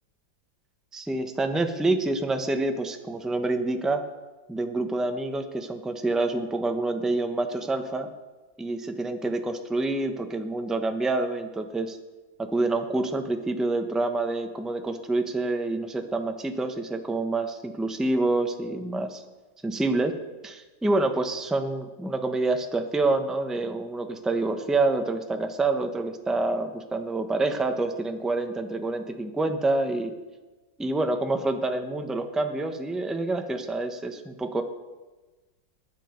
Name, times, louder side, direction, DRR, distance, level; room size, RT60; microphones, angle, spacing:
voice 1, 0.9-4.0 4.5-8.1 8.6-12.0 12.4-19.2 19.6-20.1 20.4-30.1 30.8-34.6, right 2 dB, ahead, 5 dB, 0.7 m, -27 dB
22.0 x 10.0 x 5.3 m, 1.2 s
omnidirectional pair, 2.0 m